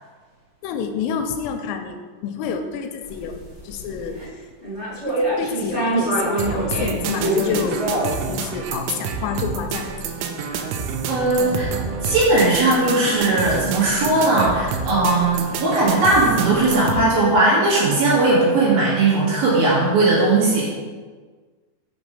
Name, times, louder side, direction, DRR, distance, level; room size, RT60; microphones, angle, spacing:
voice 1, 0.6-4.2 5.1-9.9, left 6 dB, 85° left, 6 dB, 3.2 m, -28 dB
sound 1, 3.0-4.2 4.6-8.3, right 1 dB, 30° right, 1.3 m, -25 dB
sound 2, 6.4-17.1, right 5 dB, 80° right, 2.9 m, -28 dB
voice 2, 11.1-11.8 12.0-20.6, right 2 dB, 55° right, -7 dB, 3.4 m, -18 dB
7.1 x 6.0 x 5.5 m, 1.5 s
omnidirectional pair, 5.9 m